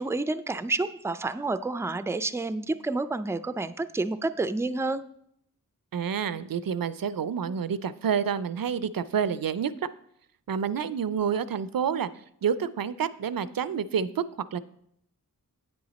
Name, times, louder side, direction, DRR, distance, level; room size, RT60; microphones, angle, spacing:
voice 1, 0.0-5.0, right 3 dB, 10° right, 13 dB, 0.3 m, -29 dB
voice 2, 5.9-9.7 10.5-12.1 12.4-14.2 14.5-14.6, right 7 dB, 70° right, 16 dB, 0.5 m, -28 dB
8.4 x 7.8 x 4.1 m, 0.72 s
wide cardioid pair, 40°, 36 cm